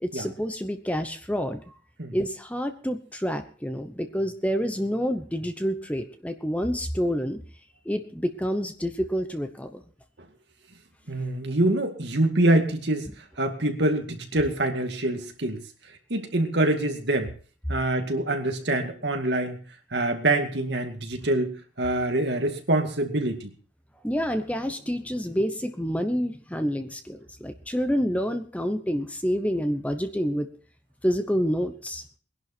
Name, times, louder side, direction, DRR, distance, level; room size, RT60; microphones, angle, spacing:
voice 1, 0.0-1.7 2.1-7.4 7.8-9.8 24.0-30.5 31.0-32.0, equal, 5° left, 8 dB, 0.8 m, -28 dB
voice 2, 11.1-13.1 13.4-15.6 16.1-17.3 17.7-19.6 19.9-23.5, right 1 dB, 60° right, 4 dB, 2.2 m, -25 dB
20.5 x 11.0 x 4.4 m, 0.41 s
head